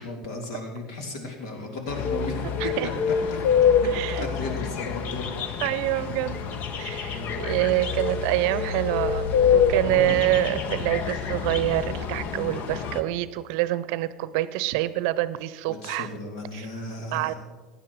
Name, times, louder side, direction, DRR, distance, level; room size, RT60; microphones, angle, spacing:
voice 1, 0.0-2.4 3.3-3.6 4.0-5.3 7.1-7.4 9.8-10.3 15.7-17.3, left 3 dB, 70° left, 3 dB, 2.9 m, -35 dB
sound 1, 1.9-13.0, left 6 dB, 50° left, 1.0 m, -26 dB
voice 2, 3.8-4.3 5.6-6.5 6.8-16.1 16.5-16.7 17.1-17.3, right 15 dB, 65° right, 16 dB, 0.7 m, -26 dB
16.0 x 10.5 x 4.8 m, 1.4 s
hypercardioid pair, 85°, 3 cm